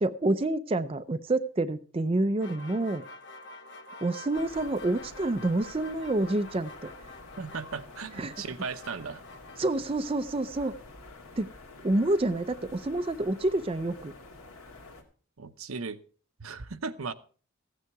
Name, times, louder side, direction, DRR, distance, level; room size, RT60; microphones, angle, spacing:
voice 1, 0.0-3.0 4.0-6.9 8.2-8.3 9.6-10.7 11.4-11.5 11.8-14.1, right 2 dB, 25° right, 0.5 m, -28 dB
sound 1, 2.4-9.6, left 2 dB, 55° left, 1.0 m, -48 dB
sound 2, 4.3-15.0, left 3 dB, 90° left, 2.5 m, -49 dB
voice 2, 7.4-9.2 15.4-16.0 16.4-17.1, right 4 dB, 80° right, 0.8 m, -36 dB
15.0 x 9.2 x 4.7 m
head